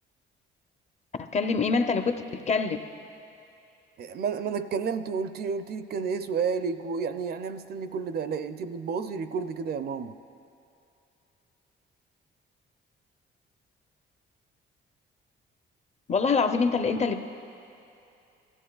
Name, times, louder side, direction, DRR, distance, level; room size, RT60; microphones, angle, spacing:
voice 1, 1.2-2.8 16.1-17.2, left 4 dB, 35° left, 7 dB, 0.7 m, -25 dB
voice 2, 4.0-10.2, right 5 dB, 55° right, 10 dB, 0.4 m, -31 dB
16.5 x 13.5 x 2.4 m, 2.7 s
cardioid pair, 90°, 20 cm